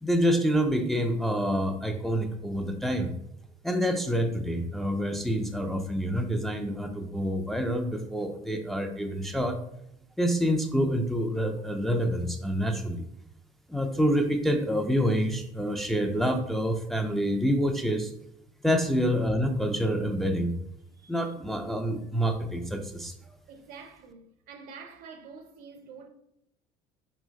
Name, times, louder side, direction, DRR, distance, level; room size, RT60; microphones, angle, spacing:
voice 1, 0.0-3.1 3.6-9.6 10.2-13.1 13.7-18.1 18.6-20.6 21.1-23.2, equal, ahead, 0.4 m, -27 dB
voice 2, 20.9-21.3 23.5-26.1, right 5 dB, 70° right, 0.8 m, -47 dB
4.4 x 3.1 x 3.6 m
cardioid pair, 115°, 15 cm